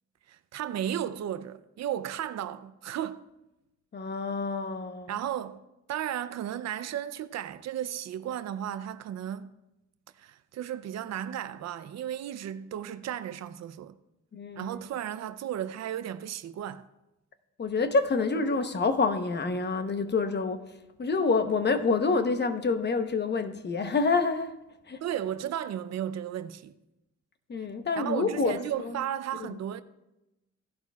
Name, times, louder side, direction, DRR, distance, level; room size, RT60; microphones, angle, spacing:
voice 1, 0.3-3.2 5.1-5.6 5.9-9.5 10.2-13.9 14.6-16.9 25.0-26.7 28.0-29.8, right 10 dB, 60° right, 0.6 m, -34 dB
voice 2, 3.9-5.2 14.3-14.8 17.6-20.7 21.0-24.6 24.9-25.0 27.5-28.9 29.4-29.6, left 4 dB, 35° left, 0.9 m, -27 dB
16.0 x 11.5 x 2.4 m
cardioid pair, 90°, 30 cm